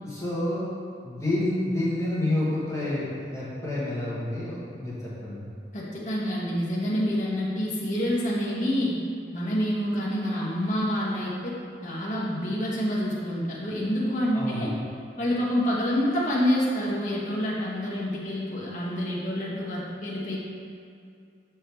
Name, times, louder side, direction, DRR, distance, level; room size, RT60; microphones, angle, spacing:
voice 1, 0.0-0.6 1.0-5.4 14.3-14.7, left 1 dB, 15° left, -9 dB, 1.3 m, -29 dB
voice 2, 5.7-9.0 9.3-14.7 15.2-20.4, equal, 45° left, -6 dB, 0.9 m, -27 dB
6.3 x 4.6 x 3.4 m, 2.4 s
head